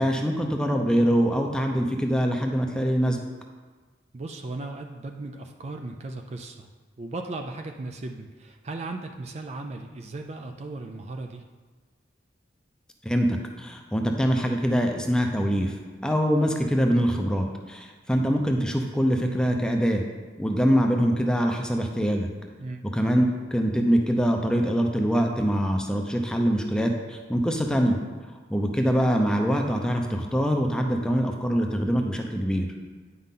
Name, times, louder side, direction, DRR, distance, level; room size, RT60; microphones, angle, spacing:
voice 1, 0.0-3.2 13.0-15.7 16.0-20.0 20.4-22.3 22.9-28.0 28.5-32.7, equal, 5° left, 2 dB, 0.6 m, -24 dB
voice 2, 4.1-6.7 7.0-11.5 22.6-22.8, right 2 dB, 35° right, 4 dB, 0.4 m, -36 dB
9.3 x 5.7 x 3.8 m, 1.4 s
head